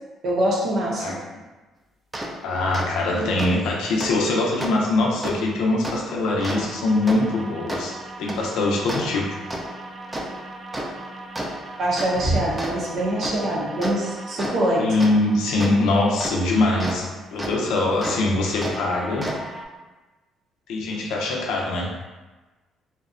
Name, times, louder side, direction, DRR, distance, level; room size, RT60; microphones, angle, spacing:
voice 1, 0.2-1.2 11.8-14.9, right 1 dB, 60° right, -4 dB, 0.6 m, -23 dB
sound 1, 2.1-2.3 2.7-2.9 3.4-3.5 4.0-4.1 4.6-4.7 5.2-5.3 5.8-5.9 6.4-17.0 17.4-17.5 18.0-18.1 18.6-19.6, right 1 dB, 15° right, 0.4 m, -33 dB
voice 2, 2.4-7.9 8.2-9.3 14.8-17.1 17.3-19.3 20.7-22.0, left 2 dB, 80° left, -2 dB, 0.5 m, -22 dB
2.6 x 2.1 x 2.4 m, 1.2 s
supercardioid pair, 80°, 0 cm